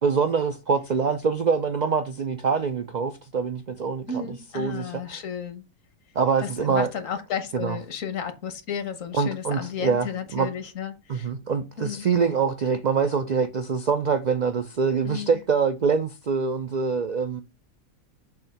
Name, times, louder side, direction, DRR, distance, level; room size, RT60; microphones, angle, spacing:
voice 1, 0.0-5.0 6.1-6.9 7.5-7.8 9.1-10.5 11.1-17.4, right 5 dB, 80° right, 0.4 m, -25 dB
voice 2, 4.1-5.6 6.4-11.3 11.8-12.1 15.0-15.4, left 6 dB, 70° left, 1.3 m, -33 dB
7.1 x 2.7 x 5.7 m
omnidirectional pair, 1.5 m